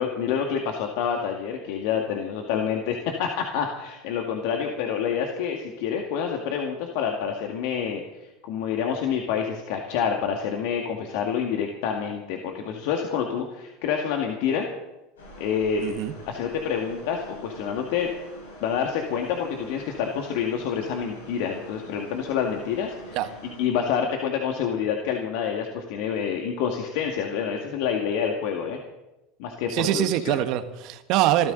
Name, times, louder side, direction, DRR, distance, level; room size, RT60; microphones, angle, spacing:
voice 1, 0.0-14.7 15.4-16.0 16.3-18.1 18.6-23.2 23.6-28.8 29.4-30.4, left 7 dB, 65° left, 2 dB, 2.0 m, -27 dB
sound 1, 15.2-23.6, left 1 dB, 85° left, 6.1 m, -45 dB
voice 2, 15.8-16.1 23.1-23.3 29.7-31.5, right 13 dB, 60° right, 9 dB, 1.5 m, -24 dB
26.5 x 13.5 x 4.0 m, 0.99 s
hypercardioid pair, 90°, 0 cm